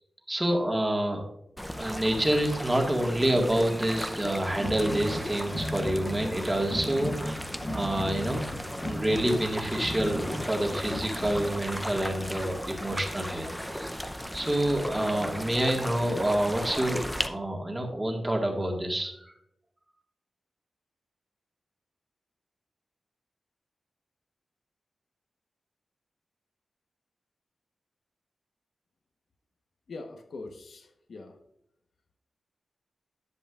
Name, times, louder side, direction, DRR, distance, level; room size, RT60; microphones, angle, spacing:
voice 1, 0.3-1.2 1.8-14.0 14.3-19.3, right 1 dB, 15° right, 2 dB, 1.7 m, -28 dB
sound 1, 1.6-17.3, equal, 5° left, 0.6 m, -36 dB
sound 2, 4.5-11.4, left 1 dB, 50° left, 2.1 m, -37 dB
voice 2, 29.9-31.4, left 3 dB, 65° left, 5 dB, 1.0 m, -42 dB
11.0 x 7.7 x 2.4 m, 0.77 s
wide cardioid pair, 140°, 0 cm